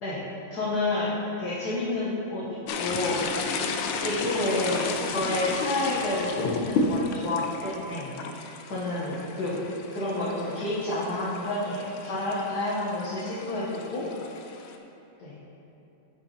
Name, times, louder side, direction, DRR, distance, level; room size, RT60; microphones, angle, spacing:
voice 1, 0.5-2.5 2.7-3.2 4.0-8.4 8.7-9.6 9.9-14.1 15.2-15.4, left 2 dB, 60° left, -8 dB, 1.7 m, -29 dB
sound 1, 2.7-14.7, left 3 dB, 80° left, 1.3 m, -33 dB
10.0 x 6.8 x 2.9 m, 2.8 s
omnidirectional pair, 2.0 m